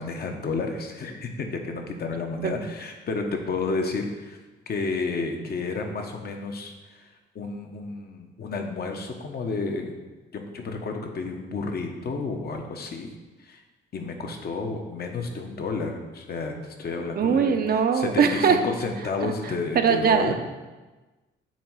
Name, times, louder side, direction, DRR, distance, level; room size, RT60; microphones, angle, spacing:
voice 1, 0.0-4.4 4.7-6.7 7.3-9.9 10.3-13.1 13.4-13.6 13.9-20.3, left 4 dB, 50° left, 3 dB, 1.1 m, -31 dB
voice 2, 17.2-18.6 19.2-19.3 19.7-20.3, right 6 dB, 50° right, 6 dB, 0.7 m, -21 dB
8.6 x 3.2 x 6.1 m, 1.2 s
cardioid pair, 90°, 20 cm